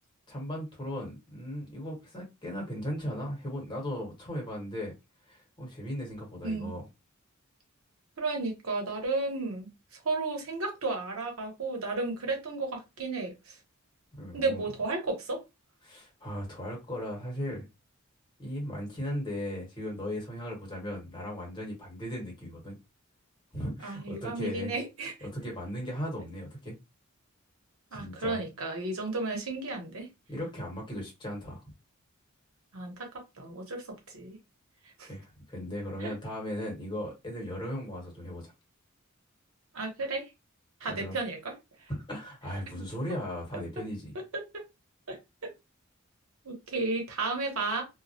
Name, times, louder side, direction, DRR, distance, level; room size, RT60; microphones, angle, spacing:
voice 1, 0.3-4.9 5.3-6.9 14.1-14.6 15.8-17.7 18.4-22.8 23.5-24.8 25.2-26.7 27.9-28.4 30.3-31.6 35.1-38.5 40.9-41.2 41.9-44.2, equal, 20° left, 1.1 m, -37 dB
voice 2, 8.2-9.7 10.0-13.6 14.3-15.4 23.8-25.1 27.9-30.1 32.7-33.1 33.4-34.4 35.0-35.1 36.0-36.1 39.7-40.2 40.8-41.4 42.7-42.8 44.5-44.6 45.1-45.2 45.4-45.5 46.4-47.8, right 3 dB, 80° right, 0.9 m, -33 dB
2.2 x 2.1 x 2.7 m
head